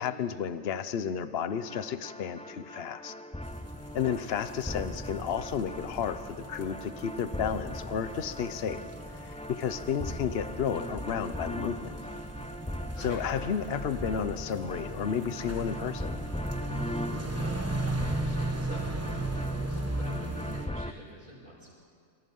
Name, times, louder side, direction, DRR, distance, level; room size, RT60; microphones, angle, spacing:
voice 1, 0.0-3.1 3.9-11.9 13.0-16.2, left 7 dB, 55° left, 12 dB, 1.1 m, -32 dB
sound 1, 1.5-20.9, left 1 dB, 10° left, 0.4 m, -40 dB
sound 2, 3.4-20.7, right 2 dB, 10° right, 1.2 m, -37 dB
voice 2, 4.0-4.4 13.0-13.2 17.2-21.7, right 1 dB, 40° right, -9 dB, 7.6 m, -48 dB
27.0 x 26.5 x 5.5 m, 2.2 s
omnidirectional pair, 1.3 m